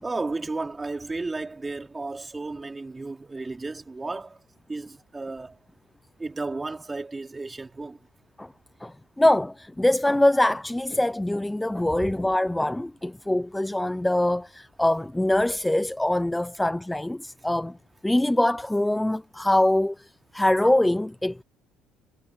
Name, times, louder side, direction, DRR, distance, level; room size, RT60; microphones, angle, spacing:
voice 1, 0.0-4.4 4.7-5.5 6.2-8.0 12.0-12.1, right 3 dB, 20° right, 4.5 m, -33 dB
voice 2, 8.8-17.8 18.0-21.4, left 1 dB, 5° left, 0.6 m, -23 dB
supercardioid pair, 90°, 0 cm